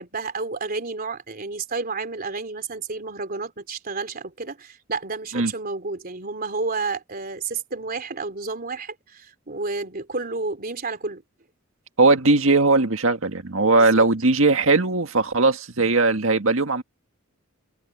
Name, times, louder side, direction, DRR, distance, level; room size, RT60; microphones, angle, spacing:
voice 1, 0.0-11.2 13.7-14.1, right 3 dB, 45° right, 3.5 m, -31 dB
voice 2, 12.0-16.8, right 3 dB, 70° right, 1.9 m, -19 dB
head